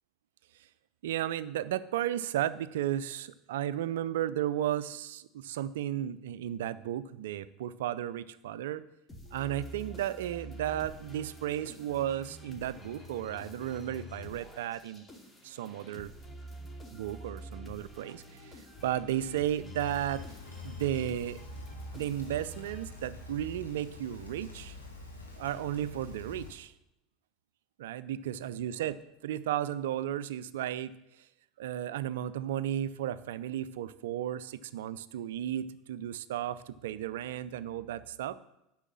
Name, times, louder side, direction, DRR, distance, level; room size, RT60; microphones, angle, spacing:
voice 1, 1.0-8.8 9.3-15.0 15.4-16.1 16.9-20.2 20.6-21.4 21.9-24.8 25.4-26.7 27.8-30.9 31.6-38.4, right 11 dB, 65° right, 16 dB, 0.5 m, -34 dB
sound 1, 9.1-23.3, left 1 dB, 20° left, 2.5 m, -47 dB
Rain, 19.8-26.5, left 2 dB, 90° left, 1.9 m, -47 dB
9.9 x 6.3 x 7.4 m, 0.87 s
figure-of-eight pair, 75°, 0 cm